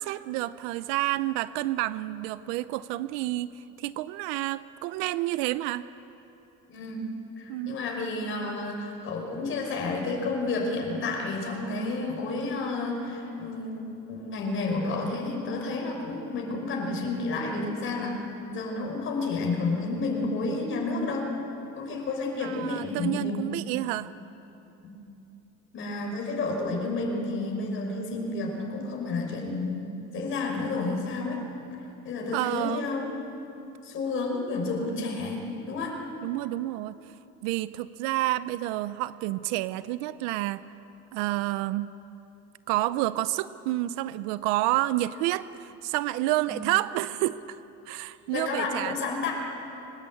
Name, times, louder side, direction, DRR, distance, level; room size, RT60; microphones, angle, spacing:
voice 1, 0.0-3.5 3.8-5.9 7.5-7.8 22.4-24.1 32.3-32.9 36.2-37.0 37.4-40.6 41.1-41.9 42.7-47.6 47.9-49.1, right 16 dB, 85° right, 15 dB, 0.7 m, -29 dB
voice 2, 6.7-7.1 7.4-18.2 18.5-21.3 21.8-23.4 24.8-24.9 25.7-29.9 30.1-31.4 32.0-33.1 33.8-35.9 46.5-46.6 48.3-49.3, left 3 dB, 35° left, 0 dB, 5.4 m, -30 dB
23.5 x 20.0 x 8.6 m, 2.9 s
cardioid pair, 145°, 34 cm